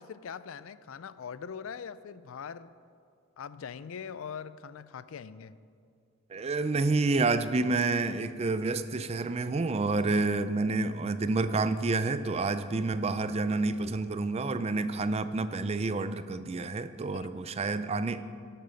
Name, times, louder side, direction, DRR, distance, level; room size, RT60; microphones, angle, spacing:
voice 1, 0.0-2.7 3.4-5.6 17.1-17.3, left 6 dB, 75° left, 16 dB, 0.4 m, -42 dB
voice 2, 6.3-18.2, right 3 dB, 30° right, 12 dB, 0.4 m, -29 dB
12.0 x 8.9 x 5.2 m, 2.3 s
head